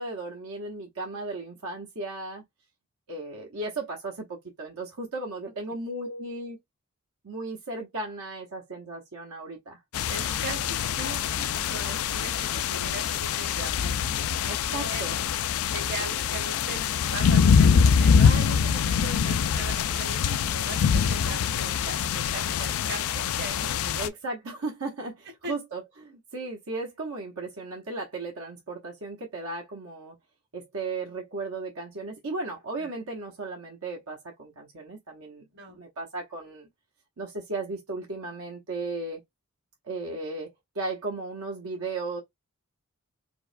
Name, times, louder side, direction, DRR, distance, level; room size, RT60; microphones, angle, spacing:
voice 1, 0.0-2.4 3.1-6.6 7.2-9.8 14.5-15.2 24.0-30.2 30.5-35.4 35.7-36.7 37.2-39.2 39.9-40.5 40.7-42.2, right 2 dB, 75° right, 0.9 m, -35 dB
sound 1, 9.9-24.1, left 7 dB, 70° left, 0.4 m, -24 dB
voice 2, 10.1-15.1 15.7-24.0 25.4-25.5 32.8-32.9 35.5-35.8, right 3 dB, 50° right, 1.1 m, -40 dB
4.6 x 2.1 x 2.5 m
head